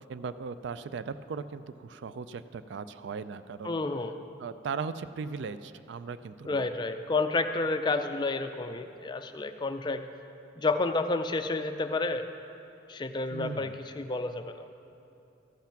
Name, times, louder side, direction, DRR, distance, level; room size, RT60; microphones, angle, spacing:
voice 1, 0.1-3.8 4.4-6.7 13.3-13.8, right 5 dB, 65° right, 13 dB, 0.3 m, -38 dB
voice 2, 3.6-4.1 6.4-10.0 10.6-12.3 12.9-14.8, left 3 dB, 25° left, 8 dB, 0.4 m, -30 dB
14.0 x 5.8 x 5.8 m, 2.7 s
head